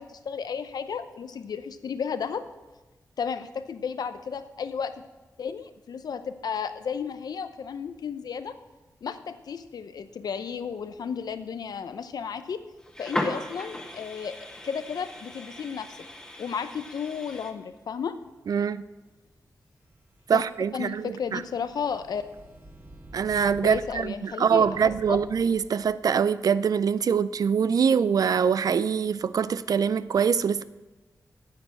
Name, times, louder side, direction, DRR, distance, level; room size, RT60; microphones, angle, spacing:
voice 1, 0.0-2.5 3.2-4.9 5.4-8.5 9.0-12.6 13.0-14.3 14.6-16.0 16.4-18.1 20.3-20.4 20.7-22.2 23.6-25.2, left 6 dB, 80° left, 11 dB, 0.7 m, -33 dB
sound 1, 12.8-17.5, left 1 dB, 10° left, 1.5 m, -37 dB
voice 2, 18.5-18.8 20.3-21.4 23.1-30.6, right 7 dB, 70° right, 15 dB, 0.4 m, -24 dB
sound 2, 19.7-26.1, right 1 dB, 35° right, 2.0 m, -48 dB
9.5 x 8.6 x 6.3 m, 1.2 s
wide cardioid pair, 100°, 7 cm